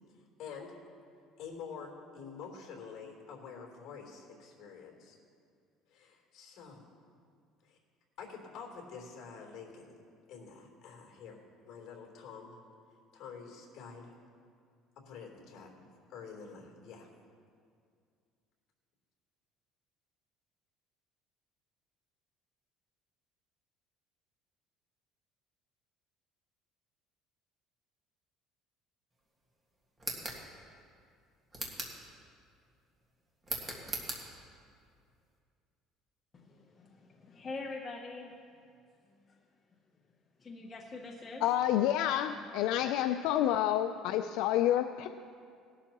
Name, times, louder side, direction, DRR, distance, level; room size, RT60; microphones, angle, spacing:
voice 1, 0.4-0.7 1.4-5.2 5.9-6.8 7.6-7.8 8.2-10.0 10.3-12.6 13.1-14.1 15.0-15.7 16.1-17.1, left 6 dB, 50° left, 0 dB, 3.3 m, -47 dB
sound 1, 30.0-30.4 31.5-32.0 33.4-34.2, right 2 dB, 15° right, 1.8 m, -38 dB
voice 2, 37.2-38.3 40.4-41.4, left 3 dB, 25° left, 0 dB, 0.9 m, -42 dB
voice 3, 41.4-45.2, left 11 dB, 75° left, 8 dB, 0.4 m, -29 dB
19.5 x 11.5 x 3.0 m, 2.3 s
cardioid pair, 145°, 0 cm